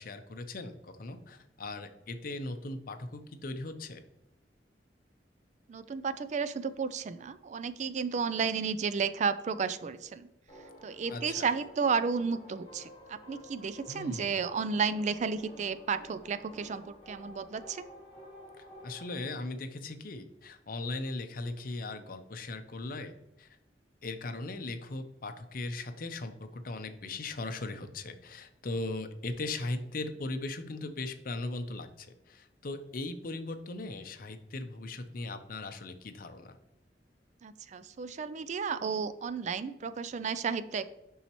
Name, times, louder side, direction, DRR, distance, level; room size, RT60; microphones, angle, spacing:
voice 1, 0.0-4.0 11.1-11.5 13.9-14.4 18.6-23.1 23.4-23.6 24.0-36.6, left 2 dB, 55° left, 7 dB, 0.7 m, -38 dB
voice 2, 5.7-10.3 10.8-17.8 37.4-40.8, right 5 dB, 40° right, 13 dB, 0.3 m, -32 dB
sound 1, 10.5-19.2, equal, 35° left, 2.2 m, -52 dB
7.0 x 5.5 x 3.0 m, 0.92 s
head